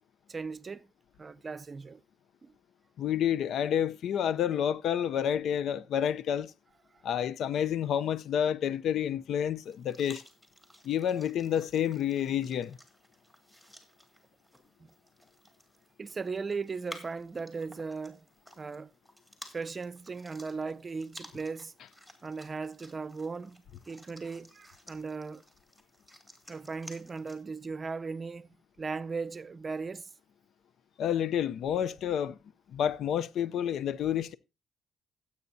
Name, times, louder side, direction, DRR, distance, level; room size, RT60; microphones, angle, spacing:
voice 1, 0.3-0.9 1.2-2.0 2.4-2.5 14.8-14.9 16.0-18.3 18.6-18.9 19.5-21.7 22.2-25.4 26.5-28.5 28.8-30.1, right 4 dB, 35° right, 0.6 m, -37 dB
voice 2, 3.0-6.5 7.0-10.2 10.8-12.8 31.0-32.4 32.7-34.3, left 9 dB, 70° left, 0.6 m, -29 dB
sound 1, 9.6-27.4, equal, 10° left, 3.2 m, -54 dB
16.5 x 8.5 x 2.7 m
cardioid pair, 90°, 0 cm